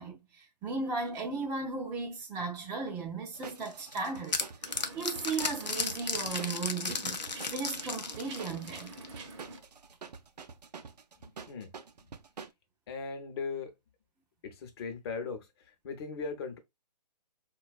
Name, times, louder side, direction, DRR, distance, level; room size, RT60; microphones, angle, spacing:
voice 1, 0.0-4.5 4.9-7.2 7.5-8.9, right 4 dB, 10° right, 0.5 m, -36 dB
sound 1, 3.3-12.5, right 5 dB, 75° right, 0.5 m, -48 dB
sound 2, 3.6-9.1, left 4 dB, 90° left, 0.6 m, -35 dB
sound 3, 4.6-9.6, right 3 dB, 45° right, 0.7 m, -47 dB
voice 2, 11.2-11.7 12.9-13.7 14.4-16.6, left 4 dB, 40° left, 0.7 m, -39 dB
4.3 x 2.3 x 2.3 m
figure-of-eight pair, 135°, 21 cm